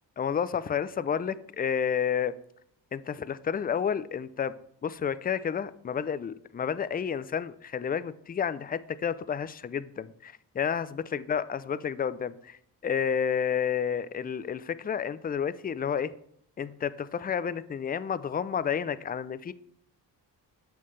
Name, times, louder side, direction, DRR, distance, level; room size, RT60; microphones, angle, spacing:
voice 1, 0.2-2.3 2.9-4.5 4.8-16.1 16.6-19.5, left 7 dB, 20° left, 15 dB, 0.4 m, -30 dB
7.3 x 5.7 x 3.2 m, 0.69 s
supercardioid pair, 50°, 44 cm